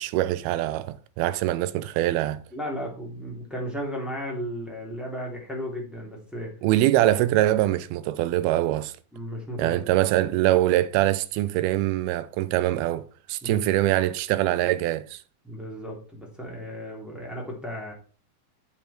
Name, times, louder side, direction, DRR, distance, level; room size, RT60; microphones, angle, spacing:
voice 1, 0.0-2.4 6.6-8.9 9.6-15.2, right 14 dB, 85° right, 2.5 m, -23 dB
voice 2, 2.5-6.5 9.1-9.9 13.4-13.6 15.4-17.9, equal, ahead, 2.6 m, -34 dB
8.9 x 7.4 x 4.4 m
omnidirectional pair, 4.4 m